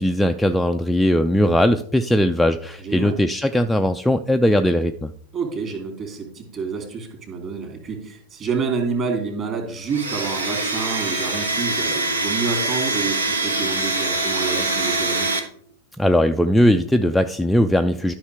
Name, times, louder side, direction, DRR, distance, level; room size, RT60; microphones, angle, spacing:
voice 1, 0.0-5.1 16.0-18.1, equal, 5° left, 6 dB, 0.4 m, -19 dB
voice 2, 2.8-3.1 5.3-15.4, right 5 dB, 30° right, 3 dB, 2.7 m, -28 dB
Domestic sounds home sounds, 9.9-15.4, right 2 dB, 75° right, 1.2 m, -24 dB
12.0 x 5.7 x 3.4 m, 0.62 s
figure-of-eight pair, 90°, 0 cm